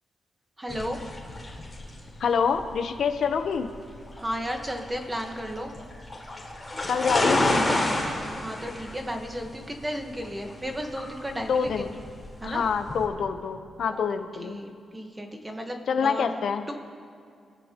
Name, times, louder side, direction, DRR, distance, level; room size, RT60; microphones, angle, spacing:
voice 1, 0.6-1.0 4.2-5.7 8.4-11.9 12.4-12.6 13.9-14.0 14.4-16.3 16.7-16.8, equal, 10° right, 3 dB, 1.3 m, -34 dB
sound 1, 0.7-13.1, left 1 dB, 10° left, 4.1 m, -30 dB
voice 2, 2.2-3.7 6.9-7.6 11.5-11.9 12.4-14.6 15.9-16.6, left 6 dB, 60° left, 7 dB, 0.9 m, -26 dB
29.5 x 15.0 x 3.0 m, 2.3 s
wide cardioid pair, 170°, 0 cm